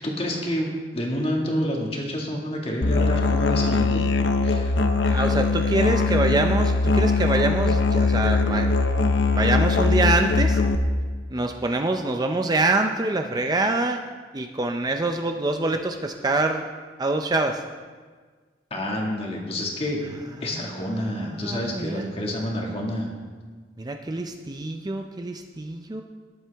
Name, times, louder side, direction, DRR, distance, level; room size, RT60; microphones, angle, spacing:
voice 1, 0.0-4.0 4.4-4.7 18.7-20.0 20.4-23.1, equal, 35° left, -1 dB, 1.8 m, -28 dB
Musical instrument, 2.8-10.8, left 3 dB, 75° left, 0.7 m, -21 dB
voice 2, 5.1-8.7 9.3-10.6 11.3-14.0 14.3-16.6 17.0-17.6 20.5-22.1 23.8-26.0, right 2 dB, 20° right, 5 dB, 0.5 m, -25 dB
19.5 x 7.5 x 3.5 m, 1.5 s
head